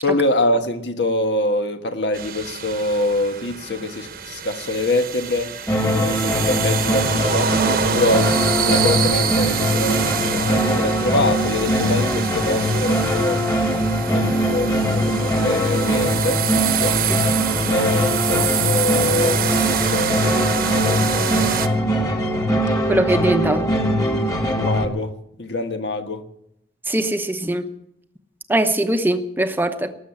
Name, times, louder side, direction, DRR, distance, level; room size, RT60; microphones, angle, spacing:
voice 1, 0.0-5.6 5.8-7.6 7.9-13.4 14.1-17.0 17.7-21.8 24.0-26.3, left 1 dB, 70° left, 1.5 m, -25 dB
sound 1, 2.1-21.7, right 7 dB, 50° right, 1.1 m, -26 dB
sound 2, 5.7-24.9, equal, 20° left, 1.7 m, -21 dB
voice 2, 22.9-23.7 26.9-27.6 28.5-29.9, right 1 dB, 10° right, 0.8 m, -21 dB
18.5 x 7.4 x 9.8 m
head